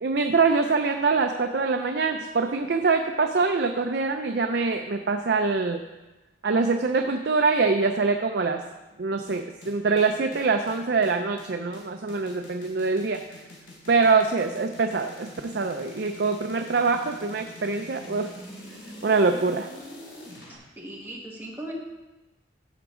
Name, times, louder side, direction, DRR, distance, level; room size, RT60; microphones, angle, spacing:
voice 1, 0.0-5.8 6.4-8.6 9.0-13.2 13.9-18.3 19.0-19.7, right 4 dB, 60° right, 5 dB, 0.5 m, -24 dB
sound 1, 9.3-20.6, left 1 dB, 85° left, 2.7 m, -45 dB
voice 2, 20.5-21.7, right 1 dB, 10° right, -3 dB, 1.5 m, -39 dB
14.0 x 6.0 x 3.7 m, 1.1 s
head